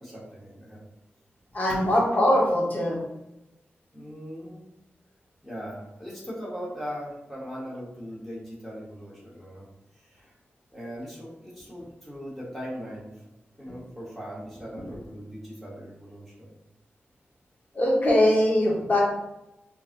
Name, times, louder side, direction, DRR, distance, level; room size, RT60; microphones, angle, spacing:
voice 1, 0.0-0.8 1.7-1.9 3.9-4.6 5.4-9.7 9.9-10.3 10.7-13.1 13.6-16.5, equal, 5° left, -7 dB, 1.5 m, -39 dB
voice 2, 1.5-3.0 14.9-15.0 17.7-19.0, left 1 dB, 45° left, -4 dB, 1.4 m, -22 dB
5.1 x 2.9 x 2.3 m, 0.90 s
wide cardioid pair, 80°, 4 cm